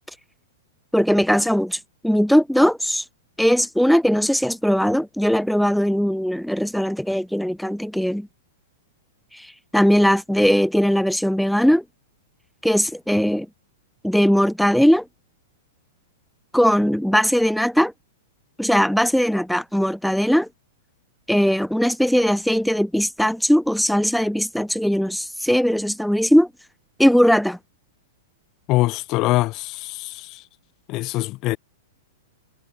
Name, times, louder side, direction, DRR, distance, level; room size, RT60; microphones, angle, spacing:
voice 1, 0.9-3.0 3.4-8.3 9.3-11.8 12.6-13.5 14.0-15.0 16.5-17.9 18.6-20.5 21.3-26.5 27.0-27.6, equal, ahead, 1.2 m, -19 dB
voice 2, 28.7-30.4 30.9-31.6, left 19 dB, 40° left, 3.6 m, -23 dB
hypercardioid pair, 110°, 0 cm